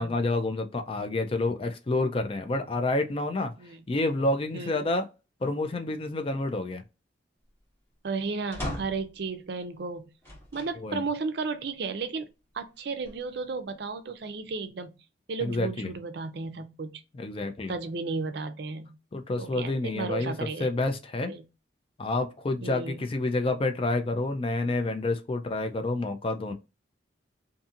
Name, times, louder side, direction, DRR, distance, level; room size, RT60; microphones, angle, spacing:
voice 1, 0.0-3.5 3.9-5.1 5.4-6.8 10.8-11.0 15.4-16.0 17.1-17.7 19.1-20.3 20.6-21.3 22.0-26.5, left 2 dB, 30° left, 0.4 m, -28 dB
voice 2, 4.5-4.8 8.0-10.1 10.5-12.3 12.5-14.9 15.3-17.0 17.7-19.0 19.4-20.7 21.3-21.4 22.6-23.0, right 4 dB, 60° right, 0.4 m, -34 dB
sound 1, 8.5-9.2 10.2-10.8 11.4-11.5 12.8-13.5, left 1 dB, 15° left, 1.2 m, -38 dB
2.7 x 2.6 x 2.4 m
head